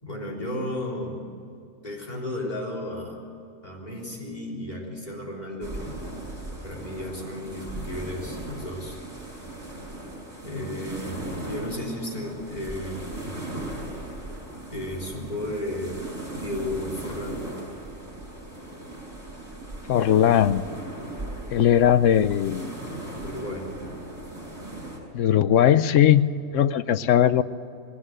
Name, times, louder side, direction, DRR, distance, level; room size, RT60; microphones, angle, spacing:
voice 1, 0.0-1.2 1.8-3.2 3.6-5.9 6.6-9.0 10.4-13.1 14.7-16.1 16.3-17.5 23.2-23.7, left 1 dB, 30° left, -1 dB, 3.8 m, -33 dB
sound 1, 5.6-25.0, right 1 dB, 10° right, 5.7 m, -38 dB
voice 2, 19.9-20.6 21.5-22.7 25.1-27.4, left 10 dB, 75° left, 14 dB, 1.0 m, -19 dB
20.5 x 16.5 x 7.8 m, 2.6 s
omnidirectional pair, 1.3 m